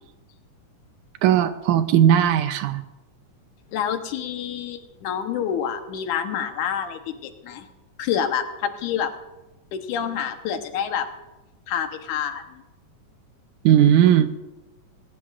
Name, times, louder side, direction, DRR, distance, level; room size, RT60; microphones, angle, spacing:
voice 1, 1.2-2.8 13.7-14.3, right 10 dB, 75° right, 10 dB, 2.0 m, -17 dB
voice 2, 3.7-7.7 8.0-9.1 9.7-11.1 11.7-12.6, left 8 dB, 75° left, 6 dB, 2.4 m, -27 dB
20.0 x 18.0 x 2.5 m, 1.0 s
omnidirectional pair, 3.7 m